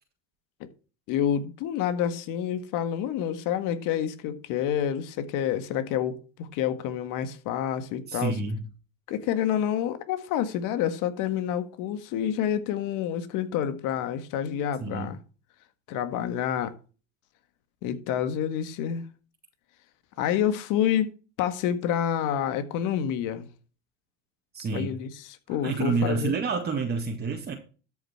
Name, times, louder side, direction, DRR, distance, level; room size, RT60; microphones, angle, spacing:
voice 1, 1.1-8.3 9.1-15.2 15.9-16.7 17.8-19.0 20.2-21.1 21.4-23.5 24.7-26.3, left 9 dB, 65° left, 1.8 m, -28 dB
voice 2, 8.1-8.7 14.8-15.1 24.5-25.0 25.6-27.5, right 4 dB, 30° right, 2.0 m, -28 dB
13.0 x 6.1 x 4.4 m
supercardioid pair, 90°, 34 cm